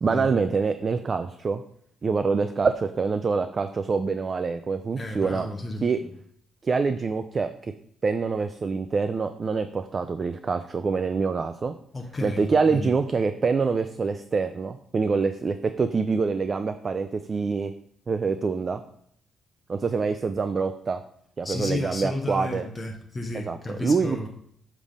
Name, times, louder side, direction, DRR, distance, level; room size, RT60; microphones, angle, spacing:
voice 1, 0.0-1.6 2.0-5.5 5.8-6.0 6.6-7.7 8.0-11.7 12.2-17.7 18.1-18.8 19.7-21.0 21.4-22.7 23.5-24.3, right 4 dB, 35° right, 9 dB, 0.3 m, -25 dB
voice 2, 5.0-5.9 11.9-12.9 21.4-24.3, left 2 dB, 20° left, 1 dB, 0.7 m, -32 dB
7.4 x 3.4 x 5.1 m, 0.67 s
cardioid pair, 100°, 0 cm